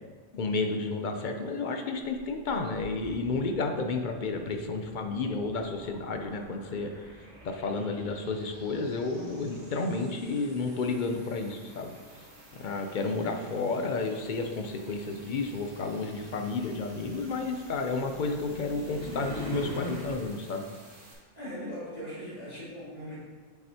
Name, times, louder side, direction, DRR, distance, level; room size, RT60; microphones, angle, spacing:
voice 1, 0.3-7.1 7.4-11.9 12.5-20.7, left 3 dB, 55° left, 5 dB, 0.6 m, -31 dB
sound 1, 2.0-21.1, right 1 dB, 80° right, 1.8 m, -52 dB
sound 2, 15.3-20.1, right 1 dB, 60° right, 2.4 m, -42 dB
voice 2, 21.3-23.2, equal, 35° left, -8 dB, 2.2 m, -39 dB
7.6 x 5.7 x 2.8 m, 1.5 s
omnidirectional pair, 1.3 m